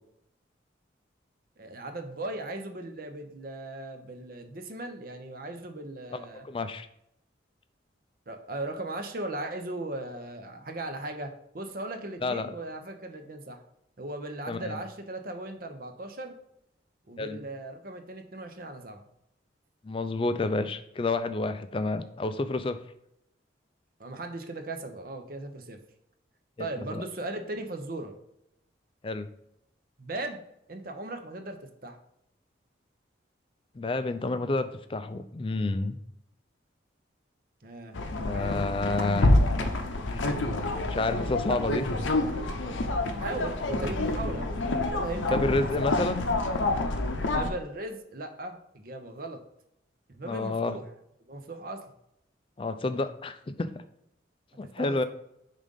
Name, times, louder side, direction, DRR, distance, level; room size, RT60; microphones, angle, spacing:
voice 1, 1.6-6.5 8.3-13.6 14.0-16.4 17.1-19.0 24.0-25.8 26.6-28.2 30.0-30.4 30.7-32.0 37.6-38.0 38.3-38.7 43.2-45.8 47.3-49.4 50.1-50.8 51.3-51.8 54.8-55.0, right 2 dB, 50° right, 6 dB, 0.7 m, -38 dB
voice 2, 6.4-6.9 12.2-12.5 14.5-14.8 17.2-17.4 19.8-22.8 26.6-27.0 29.0-29.3 33.7-36.0 38.2-39.3 40.1-40.4 40.9-41.9 45.3-46.2 50.2-50.8 52.6-53.8 54.6-55.0, left 2 dB, 30° left, 10 dB, 0.3 m, -29 dB
sound 1, 37.9-47.5, left 2 dB, 85° left, 0.7 m, -27 dB
5.0 x 3.8 x 5.3 m, 0.79 s
head